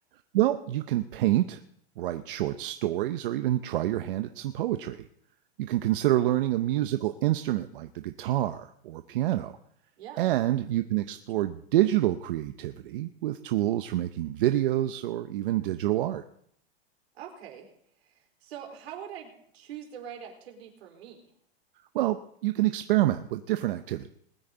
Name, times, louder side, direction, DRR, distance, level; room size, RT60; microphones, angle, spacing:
voice 1, 0.3-1.6 2.0-5.0 5.6-9.5 10.2-16.2 21.9-24.1, right 14 dB, 55° right, 9 dB, 0.8 m, -27 dB
voice 2, 17.1-17.7 18.0-21.2, right 9 dB, 70° right, 2 dB, 4.3 m, -44 dB
21.0 x 9.7 x 3.9 m, 0.68 s
supercardioid pair, 160°, 32 cm